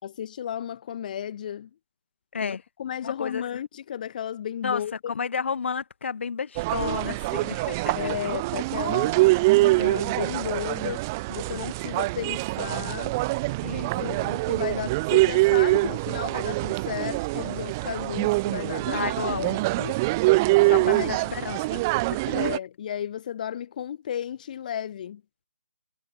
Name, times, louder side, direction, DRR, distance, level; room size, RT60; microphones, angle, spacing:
voice 1, 0.0-1.7 2.4-5.1 7.9-9.2 9.5-13.1 13.9-19.0 19.3-20.0 20.8-21.3 22.3-25.2, left 9 dB, 30° left, 5.6 m, -34 dB
voice 2, 3.0-3.4 4.6-8.0 9.9-10.0 13.6-14.1 18.9-19.6 20.6-22.2, left 6 dB, 50° left, 5.5 m, -32 dB
sound 1, 6.6-22.6, right 22 dB, 10° right, 0.4 m, -24 dB
hypercardioid pair, 165°, 8 cm